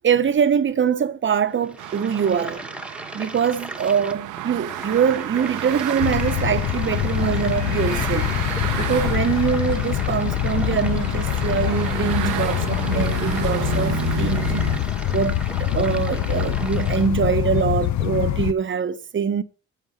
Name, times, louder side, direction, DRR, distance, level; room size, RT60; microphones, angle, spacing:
voice 1, 0.0-2.7 3.1-8.3 8.8-19.4, right 7 dB, 40° right, 0.9 m, -23 dB
sound 1, 1.5-17.1, right 1 dB, 5° right, 1.1 m, -37 dB
sound 2, 1.8-14.8, right 14 dB, 90° right, 0.8 m, -32 dB
sound 3, 6.0-18.5, left 12 dB, 70° left, 0.7 m, -24 dB
8.3 x 7.7 x 5.5 m
cardioid pair, 90°, 30 cm